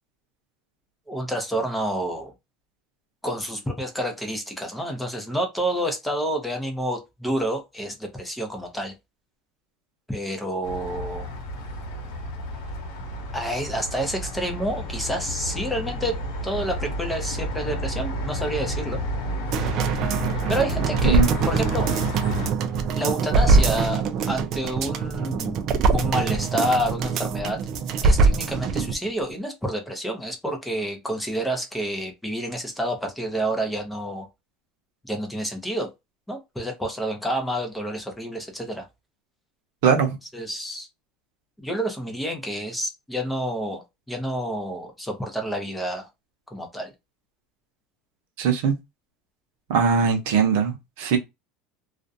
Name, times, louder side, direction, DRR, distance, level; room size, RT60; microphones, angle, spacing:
voice 1, 1.1-2.3 3.2-8.9 10.1-11.3 13.3-16.1 16.4-19.0 20.5-21.9 23.0-25.6 25.9-27.6 28.0-34.3 35.0-35.9 36.3-38.9 40.3-40.9 41.6-46.1 46.5-46.9, right 1 dB, 5° left, 0.6 m, -29 dB
sound 1, 10.6-22.5, equal, 75° left, 1.0 m, -31 dB
sound 2, 19.5-28.9 29.3-29.4, right 4 dB, 40° right, 0.4 m, -23 dB
voice 2, 39.8-40.2 48.4-48.7 49.7-51.2, right 6 dB, 75° right, 0.6 m, -20 dB
2.4 x 2.1 x 2.6 m
supercardioid pair, 145°, 0 cm